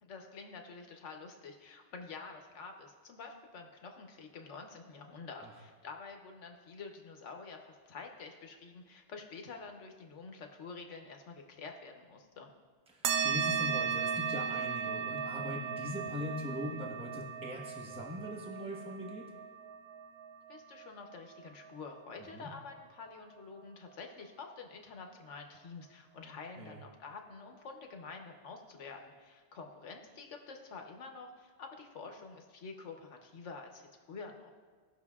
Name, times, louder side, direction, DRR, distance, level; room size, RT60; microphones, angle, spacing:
voice 1, 0.0-12.5 20.5-34.5, left 4 dB, 90° left, 3 dB, 1.3 m, -48 dB
voice 2, 12.9-19.3 22.3-22.5 26.2-26.8, left 1 dB, 5° right, -2 dB, 1.1 m, -41 dB
sound 1, 13.0-22.0, right 7 dB, 75° right, 0.9 m, -36 dB
17.0 x 6.3 x 2.4 m, 1.6 s
omnidirectional pair, 1.2 m